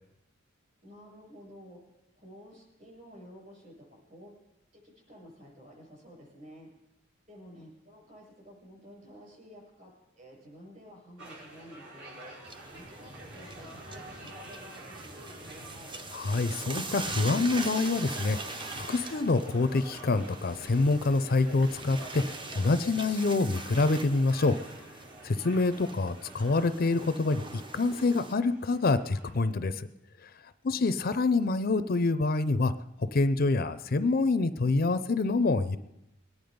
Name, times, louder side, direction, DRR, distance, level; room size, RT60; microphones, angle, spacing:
voice 1, 0.8-1.8 2.1-3.7 4.1-4.3 4.8-6.7 7.3-9.9 10.2-12.2 12.7-16.0, equal, 40° right, 0 dB, 6.8 m, -51 dB
sound 1, 11.2-29.5, right 2 dB, 65° right, 6.0 m, -48 dB
sound 2, 12.5-28.3, right 3 dB, 25° right, 0.7 m, -42 dB
voice 2, 16.1-24.6 25.2-27.4 27.7-29.9 30.6-32.7 33.0-35.8, left 3 dB, 45° left, 12 dB, 0.5 m, -26 dB
21.5 x 9.6 x 5.2 m, 0.87 s
head